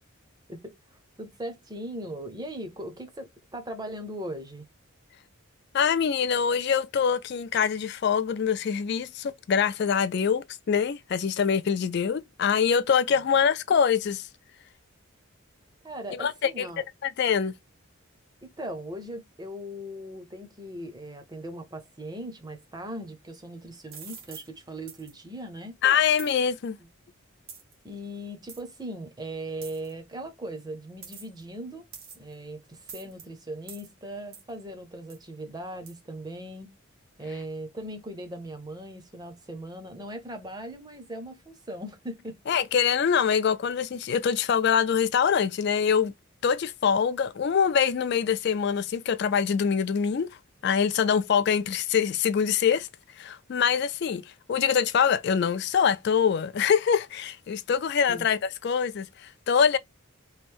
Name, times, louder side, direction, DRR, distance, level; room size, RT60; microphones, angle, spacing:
voice 1, 0.5-4.7 13.1-13.3 15.8-16.8 18.6-25.7 27.8-31.9 32.1-36.7 37.2-42.4 58.1-58.3, right 1 dB, 20° right, 0.7 m, -39 dB
voice 2, 5.7-14.3 16.1-16.7 17.0-17.6 25.8-26.8 42.5-46.1 46.4-50.3 50.6-52.9 53.2-54.2 54.5-59.8, left 7 dB, 50° left, 0.3 m, -24 dB
sound 1, 23.9-24.5 24.9-25.1 26.2-26.4 27.5-27.7 28.5-28.6 29.6-29.9 31.0-31.4 31.9-32.3 32.9-33.3 33.7-33.9 34.3-34.5 35.1-35.2 35.9-36.0, right 6 dB, 70° right, 1.4 m, -44 dB
3.1 x 2.5 x 3.5 m
head